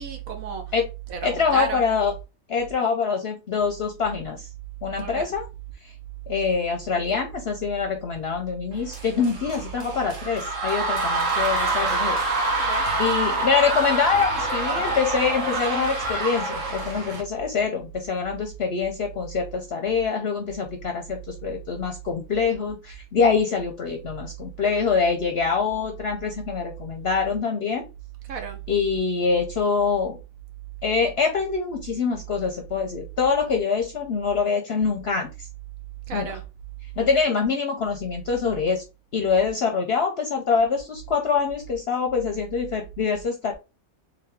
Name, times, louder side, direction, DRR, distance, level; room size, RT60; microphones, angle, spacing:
voice 1, 0.0-2.0 5.0-5.2 12.6-12.8 28.2-28.6 36.1-36.4, right 6 dB, 80° right, 1.4 m, -33 dB
voice 2, 1.2-2.1 2.5-4.5 4.8-5.4 5.8-5.9 6.3-12.6 13.0-27.8 28.7-30.2 30.8-35.5 36.1-36.3 37.0-38.8 39.1-43.5, left 5 dB, 55° left, 0.8 m, -25 dB
sound 1, 8.9-17.2, right 2 dB, 65° right, 1.6 m, -26 dB
3.5 x 3.4 x 3.5 m
omnidirectional pair, 1.4 m